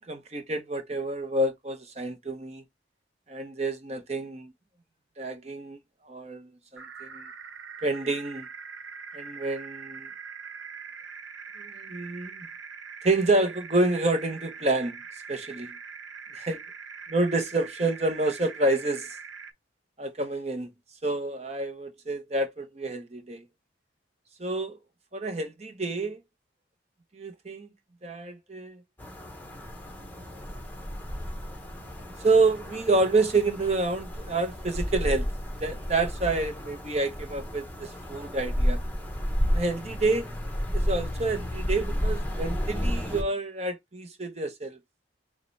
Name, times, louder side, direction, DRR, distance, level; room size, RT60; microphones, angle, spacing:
voice 1, 0.1-2.6 3.3-4.5 5.2-5.8 6.1-7.2 7.8-8.5 9.1-10.1 11.6-12.5 13.0-15.0 15.3-15.7 16.4-16.6 17.1-19.2 20.0-20.7 21.0-23.4 24.4-24.8 25.1-26.2 27.1-27.7 28.0-28.8 30.0-30.4 32.2-35.3 35.6-38.8 39.5-40.3 40.7-44.8, right 2 dB, 35° right, 0.9 m, -28 dB
sound 1, 6.8-19.5, right 6 dB, 90° right, 1.0 m, -43 dB
sound 2, 29.0-43.2, equal, 10° left, 1.0 m, -32 dB
6.5 x 2.4 x 3.2 m
head